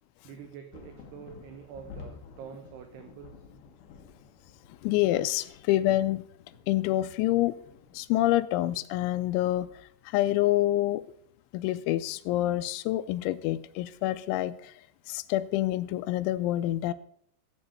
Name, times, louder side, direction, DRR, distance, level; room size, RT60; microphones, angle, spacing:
voice 1, 0.2-3.5, right 8 dB, 75° right, 6 dB, 2.6 m, -46 dB
sound 1, 0.7-8.5 8.8-8.9 9.2-10.1 11.0-11.1, left 5 dB, 65° left, 2.8 m, -51 dB
voice 2, 4.8-6.2 6.7-7.6 7.9-9.7 10.1-11.0 11.5-14.7 15.1-16.9, left 15 dB, 85° left, 12 dB, 2.9 m, -27 dB
15.0 x 7.9 x 4.3 m, 0.64 s
omnidirectional pair, 5.5 m